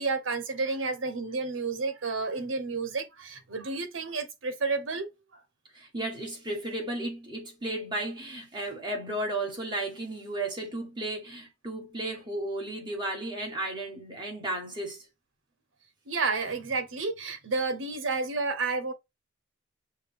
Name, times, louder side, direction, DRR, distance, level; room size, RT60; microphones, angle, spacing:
voice 1, 0.0-5.4 16.1-18.9, right 3 dB, 85° right, 0.9 m, -31 dB
voice 2, 5.7-15.0, right 1 dB, 25° right, 1.6 m, -34 dB
6.3 x 2.3 x 3.4 m
head